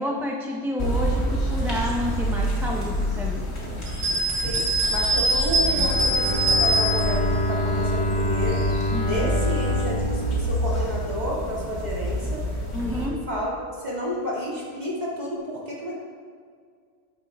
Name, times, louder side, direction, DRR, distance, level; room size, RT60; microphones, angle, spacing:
voice 1, 0.0-3.5 8.9-9.3 12.7-13.2, left 1 dB, ahead, -1 dB, 0.6 m, -29 dB
sound 1, 0.8-13.1, equal, 65° left, 2.0 m, -28 dB
sound 2, 3.9-7.2, right 1 dB, 65° right, 2.7 m, -23 dB
voice 2, 4.4-8.6 9.0-12.4 12.8-15.9, equal, 35° right, -6 dB, 2.3 m, -31 dB
Bowed string instrument, 5.6-11.6, equal, 85° left, 1.4 m, -27 dB
12.0 x 9.3 x 2.4 m, 2.1 s
omnidirectional pair, 1.2 m